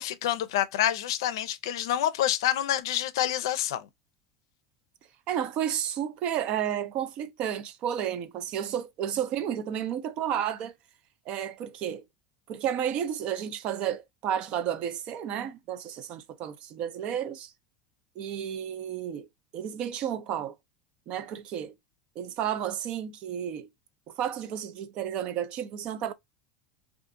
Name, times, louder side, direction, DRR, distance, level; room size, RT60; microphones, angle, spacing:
voice 1, 0.0-3.9, left 12 dB, 85° left, 0.4 m, -27 dB
voice 2, 5.3-10.7 11.3-12.0 12.5-17.5 18.2-19.3 19.5-20.5 21.1-21.7 22.2-23.7 24.2-26.1, right 9 dB, 50° right, 0.5 m, -32 dB
2.5 x 2.4 x 3.6 m
supercardioid pair, 125°, 2 cm